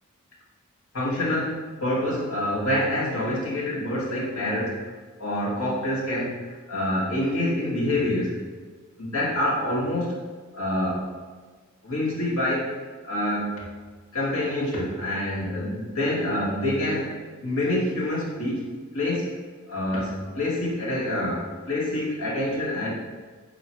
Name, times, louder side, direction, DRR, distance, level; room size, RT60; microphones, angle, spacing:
voice 1, 0.9-4.9 5.2-8.4 9.0-10.1 10.5-11.1 11.8-12.7 13.0-13.6 14.1-17.1 17.4-18.7 18.9-19.3 19.7-22.9, left 1 dB, 80° left, -6 dB, 2.4 m, -26 dB
9.1 x 6.3 x 3.4 m, 1.4 s
head